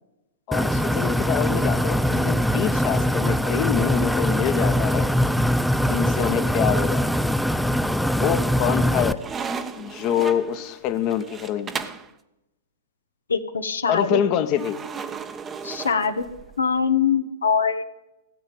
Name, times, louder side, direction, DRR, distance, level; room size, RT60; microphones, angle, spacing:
voice 1, 0.5-5.1 5.8-7.2 8.1-9.2 9.8-11.7 13.9-14.8, left 10 dB, 35° left, 8 dB, 1.3 m, -26 dB
sound 1, 0.5-9.1, equal, ahead, 0.6 m, -22 dB
sound 2, 9.1-12.1 14.6-16.6, right 5 dB, 20° right, 1.1 m, -35 dB
voice 2, 13.3-14.2 15.6-16.2 16.6-17.8, left 6 dB, 75° left, 7 dB, 1.3 m, -22 dB
16.5 x 8.1 x 9.1 m, 0.89 s
figure-of-eight pair, 100°, 0 cm